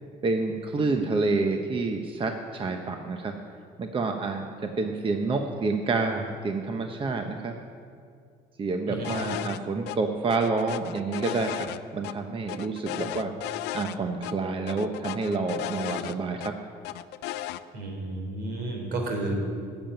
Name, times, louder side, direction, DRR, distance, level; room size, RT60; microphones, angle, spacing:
voice 1, 0.2-3.3 3.8-7.5 8.6-11.7 11.9-13.3 13.7-16.5, right 3 dB, 30° right, 4 dB, 0.9 m, -28 dB
sound 1, 9.0-9.6 9.9-10.0 10.3-12.1 12.5-14.0 14.2-14.3 14.7-16.5 16.8-17.6, left 13 dB, 90° left, 0.5 m, -35 dB
voice 2, 17.7-19.4, right 2 dB, 70° right, 2 dB, 3.4 m, -32 dB
13.5 x 7.1 x 9.1 m, 2.3 s
cardioid pair, 110°, 17 cm